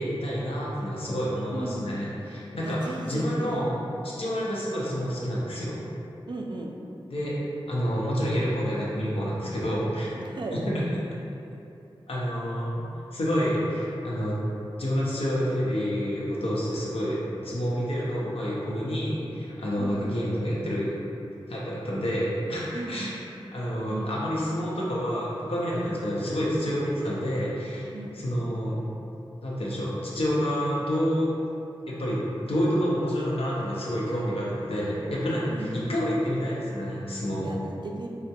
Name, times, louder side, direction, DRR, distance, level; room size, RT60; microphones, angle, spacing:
voice 1, 0.0-3.7 4.0-5.8 7.1-7.4 7.7-10.1 10.5-10.6 12.1-12.8 13.1-14.3 14.8-20.9 21.5-23.1 23.5-27.9 28.1-28.8 29.4-31.3 31.9-37.5, equal, 75° left, -6 dB, 0.7 m, -28 dB
voice 2, 1.5-1.9 2.6-3.6 6.3-6.7 10.1-10.6 19.8-20.0 22.7-23.2 23.9-24.2 27.9-28.1 35.5-35.8 37.4-38.1, right 2 dB, 50° right, 0 dB, 0.4 m, -36 dB
3.4 x 2.1 x 2.8 m, 2.7 s
cardioid pair, 40°, 10 cm